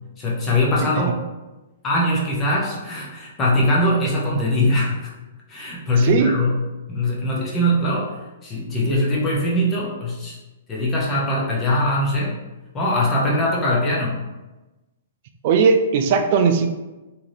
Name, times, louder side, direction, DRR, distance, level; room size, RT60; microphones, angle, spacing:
voice 1, 0.2-1.1 1.8-5.1 5.5-6.6 6.9-8.1 8.4-10.4 10.7-12.4 12.7-14.2, left 1 dB, 20° left, -4 dB, 0.6 m, -21 dB
voice 2, 6.0-6.4 15.4-16.7, right 5 dB, 50° right, 6 dB, 0.3 m, -18 dB
2.7 x 2.3 x 3.2 m, 1.1 s
hypercardioid pair, 135°, 0 cm